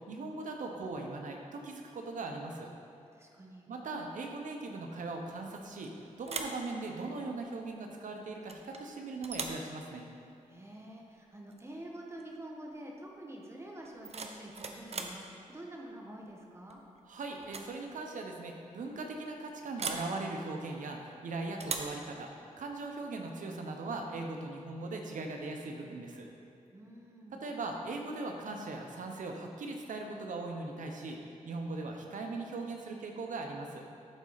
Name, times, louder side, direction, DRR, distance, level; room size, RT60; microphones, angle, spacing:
voice 1, 0.1-2.7 3.7-5.9 6.2-10.0 17.0-22.3 22.6-26.3 27.4-31.2 31.4-33.8, right 3 dB, 75° right, 2 dB, 0.9 m, -39 dB
voice 2, 3.1-3.7 10.5-16.8 26.7-27.4, right 1 dB, 20° right, -1 dB, 1.2 m, -47 dB
sound 1, 5.5-5.9 6.2-6.6 8.5-8.8 9.2-9.7 11.5-11.7 12.0-12.4 13.8-15.2 16.7-17.0 17.4-17.7 18.0-18.1 19.8-20.1 21.6-22.0, right 4 dB, 50° right, 0.7 m, -39 dB
12.5 x 4.2 x 4.0 m, 2.7 s
cardioid pair, 85°, 13 cm